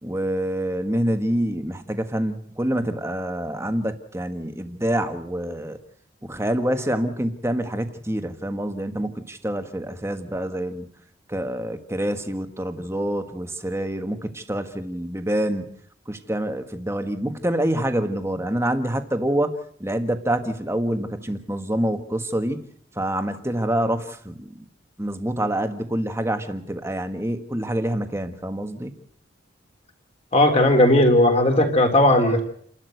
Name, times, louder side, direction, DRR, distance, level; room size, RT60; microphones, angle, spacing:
voice 1, 0.0-5.8 6.2-10.9 11.3-15.7 16.1-22.7 22.9-24.6 25.0-28.9, right 1 dB, 15° right, 8 dB, 1.6 m, -26 dB
voice 2, 30.3-32.4, left 1 dB, 30° left, 4 dB, 3.6 m, -16 dB
29.5 x 12.5 x 8.0 m, 0.66 s
head